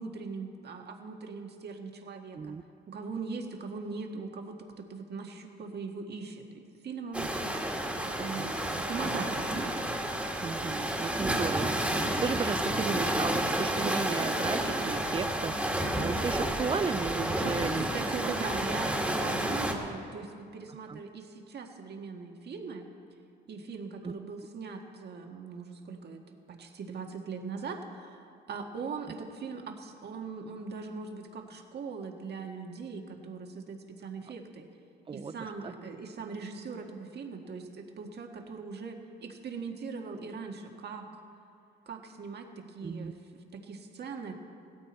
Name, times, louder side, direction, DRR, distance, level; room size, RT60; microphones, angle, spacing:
voice 1, 0.0-2.5 2.9-7.4 8.2-9.5 17.4-22.9 23.5-34.7 35.1-41.2 41.8-44.3, right 5 dB, 55° right, 3 dB, 1.7 m, -40 dB
sound 1, 7.1-19.7, right 1 dB, 5° right, 1.9 m, -30 dB
voice 2, 10.4-17.9 20.9-21.0 24.0-24.1 35.1-35.3 35.6-35.7 42.8-43.1, right 5 dB, 25° right, 15 dB, 0.5 m, -35 dB
16.5 x 14.0 x 4.3 m, 2.4 s
cardioid pair, 90°, 20 cm